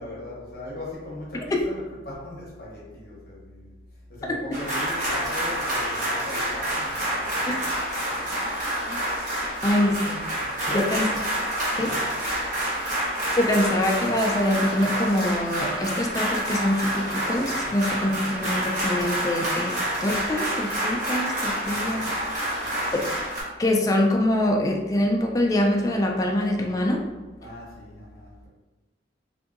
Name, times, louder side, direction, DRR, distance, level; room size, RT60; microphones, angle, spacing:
voice 1, 0.0-3.8 4.1-7.7 8.2-8.4 10.6-11.0 11.8-12.1 17.6-17.8 18.0-18.1 21.6-22.0 22.4-22.9 27.4-28.3, left 1 dB, 55° left, -5 dB, 0.7 m, -39 dB
sound 1, 4.5-23.4, right 1 dB, 45° right, 0.9 m, -28 dB
voice 2, 9.6-10.2 10.7-11.1 11.8-11.9 13.3-22.1 22.9-23.1 23.6-27.0, left 1 dB, 20° left, 0 dB, 0.3 m, -24 dB
2.7 x 2.6 x 2.4 m, 1.2 s
head